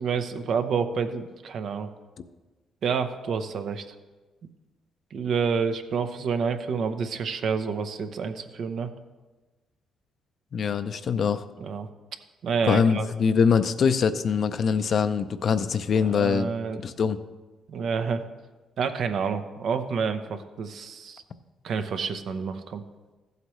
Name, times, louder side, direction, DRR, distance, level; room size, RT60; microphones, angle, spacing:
voice 1, 0.0-1.9 2.8-3.8 5.1-8.9 11.6-11.9 12.4-13.1 16.0-16.8 17.7-18.2 18.8-21.2 21.6-22.8, right 6 dB, 65° right, 8 dB, 0.7 m, -28 dB
voice 2, 10.5-11.4 12.7-17.2, left 6 dB, 55° left, 11 dB, 0.5 m, -23 dB
14.5 x 8.0 x 3.1 m, 1.2 s
cardioid pair, 90°, 0 cm